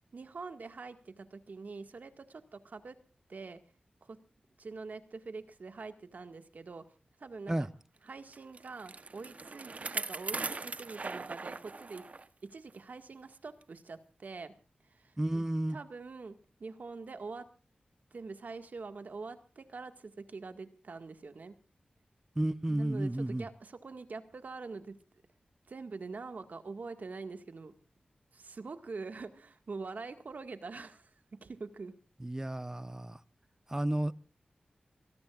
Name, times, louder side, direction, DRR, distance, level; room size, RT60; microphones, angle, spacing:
voice 1, 0.1-3.0 3.3-3.6 4.0-4.2 4.6-6.8 7.2-7.7 8.1-12.0 12.4-14.5 14.9-15.4 15.7-17.5 18.1-21.6 22.7-25.0 25.7-27.7 28.3-31.1 31.4-31.9, right 4 dB, 70° right, 1.9 m, -44 dB
Bicycle, 8.3-12.3 12.7-12.8 13.6-13.7, right 3 dB, 55° right, 1.0 m, -40 dB
voice 2, 15.2-15.8 22.4-23.5 32.2-33.2 33.7-34.1, right 1 dB, 20° right, 1.0 m, -32 dB
25.0 x 18.0 x 2.5 m
cardioid pair, 55°, 3 cm